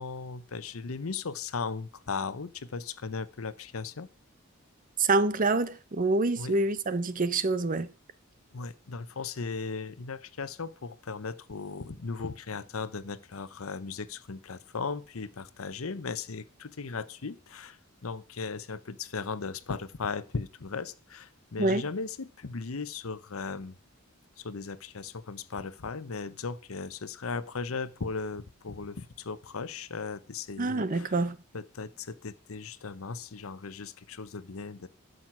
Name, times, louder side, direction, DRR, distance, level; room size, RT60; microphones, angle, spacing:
voice 1, 0.0-4.1 6.4-6.6 8.5-17.8 18.0-23.8 24.4-31.1 31.5-34.9, left 4 dB, 80° left, 0.8 m, -37 dB
voice 2, 5.0-7.9 21.6-21.8 30.6-31.4, right 3 dB, 40° right, 0.7 m, -26 dB
12.0 x 6.5 x 6.0 m
head